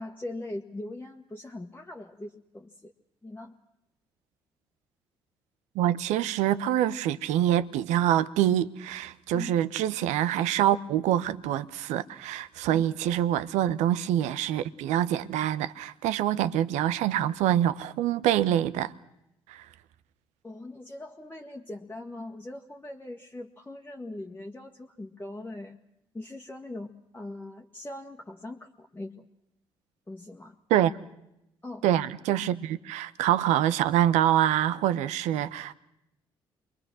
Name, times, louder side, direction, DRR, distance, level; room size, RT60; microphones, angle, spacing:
voice 1, 0.0-2.9 3.2-3.6 9.3-9.6 12.7-12.8 20.4-25.8 26.1-29.3 30.1-30.6 31.6-31.9, left 2 dB, 15° left, 1.7 m, -41 dB
voice 2, 5.7-18.9 19.5-19.6 30.7-30.9 31.8-35.7, right 11 dB, 70° right, 0.9 m, -25 dB
28.0 x 23.0 x 6.3 m
hypercardioid pair, 45°, 13 cm